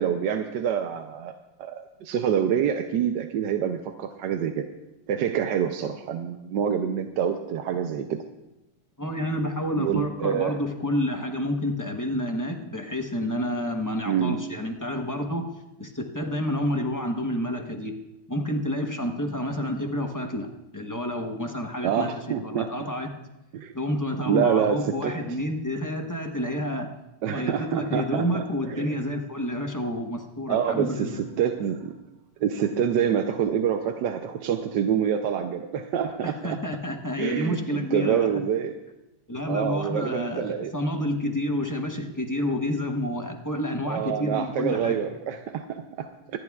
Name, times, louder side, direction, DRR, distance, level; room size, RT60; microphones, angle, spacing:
voice 1, 0.0-1.3 1.6-4.6 5.1-8.2 9.7-10.6 14.1-14.4 21.8-22.9 23.5-23.7 24.3-25.2 27.2-29.0 30.5-31.9 32.4-36.6 37.2-38.7 39.5-40.7 43.8-46.4, right 8 dB, 75° right, 6 dB, 1.3 m, -27 dB
voice 2, 9.0-15.5 15.8-17.9 18.3-20.5 20.7-23.1 23.7-26.9 27.3-31.2 36.2-38.3 39.3-45.0, left 1 dB, 15° left, 3 dB, 0.6 m, -29 dB
25.5 x 11.0 x 2.4 m, 0.98 s
omnidirectional pair, 2.0 m